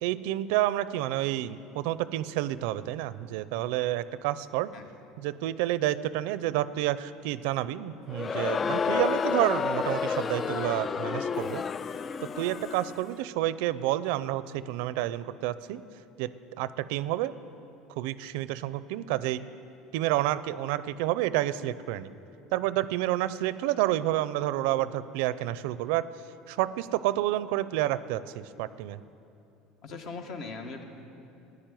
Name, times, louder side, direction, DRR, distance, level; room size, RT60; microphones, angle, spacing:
voice 1, 0.0-4.7 5.2-11.6 12.2-15.8 16.2-16.3 16.6-17.3 17.9-19.5 19.9-22.1 22.5-26.1 26.5-29.0, right 14 dB, 80° right, 16 dB, 0.5 m, -29 dB
Crowd, 8.1-13.1, left 5 dB, 30° left, 0.3 m, -30 dB
voice 2, 29.8-30.8, left 4 dB, 60° left, 4 dB, 1.9 m, -39 dB
13.5 x 9.7 x 9.1 m, 2.8 s
supercardioid pair, 120°, 0 cm